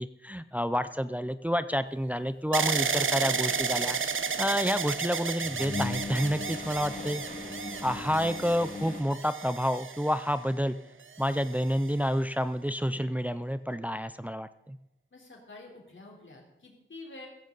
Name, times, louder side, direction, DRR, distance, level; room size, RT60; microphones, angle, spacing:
voice 1, 0.0-4.0 4.4-7.2 7.8-10.8 11.2-14.8, equal, 5° right, 12 dB, 0.5 m, -29 dB
sound 1, 2.5-10.5 11.2-11.9, right 5 dB, 90° right, 0.8 m, -32 dB
sound 2, 2.9-3.0 3.4-4.7 5.1-9.0, left 3 dB, 45° left, 2.1 m, -39 dB
voice 2, 15.1-17.3, left 2 dB, 75° left, 0 dB, 3.8 m, -48 dB
15.5 x 15.5 x 4.0 m, 0.88 s
wide cardioid pair, 75°, 20 cm